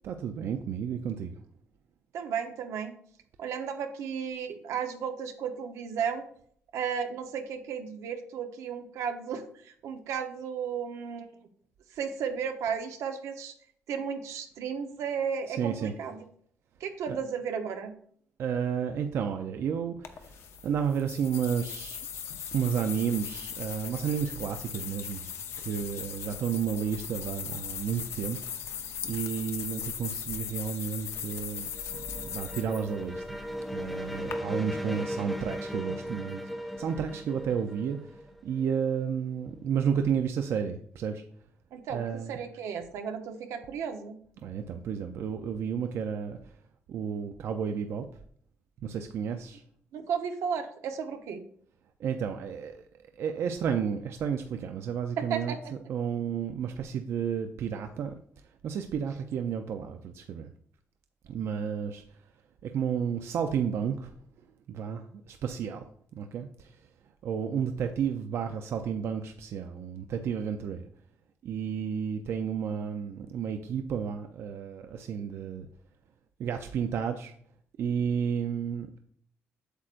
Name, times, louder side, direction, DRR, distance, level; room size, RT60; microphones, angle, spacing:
voice 1, 0.0-1.3 15.5-16.0 17.1-17.2 18.4-22.0 22.5-25.3 25.6-28.4 29.0-33.4 33.7-41.2 41.9-42.4 44.4-46.4 46.9-48.1 48.8-49.6 52.0-52.8 53.2-58.2 58.6-60.5 61.3-62.0 62.6-64.1 64.7-65.9 66.1-66.8 67.2-70.9 71.4-75.7 76.4-77.3 77.8-78.9, right 7 dB, 60° right, 6 dB, 0.5 m, -32 dB
voice 2, 2.1-3.0 3.4-6.2 6.7-11.3 11.9-13.5 13.9-16.2 16.8-17.9 41.7-44.2 49.9-51.4 55.2-55.7, right 7 dB, 85° right, 6 dB, 0.9 m, -34 dB
sound 1, 20.0-34.3, left 8 dB, 60° left, 0.7 m, -39 dB
sound 2, 31.2-38.9, equal, ahead, 0.5 m, -37 dB
8.1 x 7.5 x 2.5 m, 0.62 s
cardioid pair, 160°, 5 cm